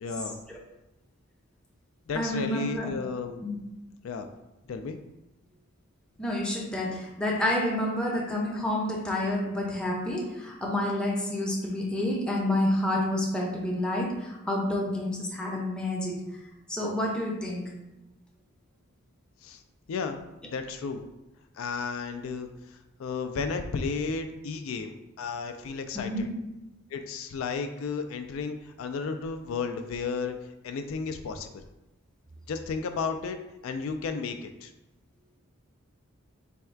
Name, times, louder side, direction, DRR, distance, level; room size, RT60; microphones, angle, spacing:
voice 1, 0.0-0.4 2.1-3.5 4.0-4.3 4.7-5.0 19.4-19.6 19.9-21.0 21.6-26.3 26.9-30.4 30.6-31.5 32.5-33.4 33.6-34.7, left 5 dB, 70° left, 7 dB, 0.3 m, -33 dB
voice 2, 2.1-3.0 3.4-3.6 6.2-16.2 16.7-17.7 25.9-26.3, left 1 dB, 5° left, -2 dB, 0.6 m, -29 dB
3.4 x 2.3 x 4.4 m, 0.96 s
head